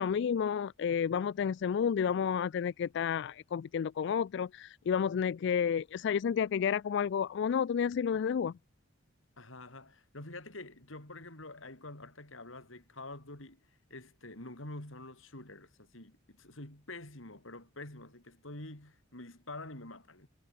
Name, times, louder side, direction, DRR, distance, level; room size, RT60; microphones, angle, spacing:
voice 1, 0.0-8.5, left 7 dB, 60° left, 0.3 m, -31 dB
voice 2, 9.4-13.6 13.9-20.3, left 2 dB, 80° left, 5.3 m, -47 dB
head